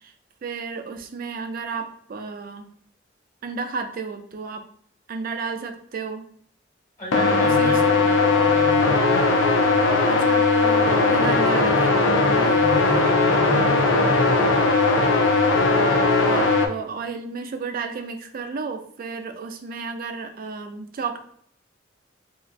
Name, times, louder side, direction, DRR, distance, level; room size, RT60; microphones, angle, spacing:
voice 1, 0.4-2.7 3.4-4.6 5.1-6.3 7.4-7.8 10.0-12.6 13.6-13.9 16.2-21.2, right 5 dB, 50° right, 7 dB, 0.4 m, -32 dB
voice 2, 7.0-9.3 12.4-14.4, equal, 35° left, -5 dB, 0.9 m, -31 dB
sound 1, 7.1-16.7, left 3 dB, 80° left, 0.4 m, -19 dB
3.2 x 2.4 x 2.5 m, 0.64 s
head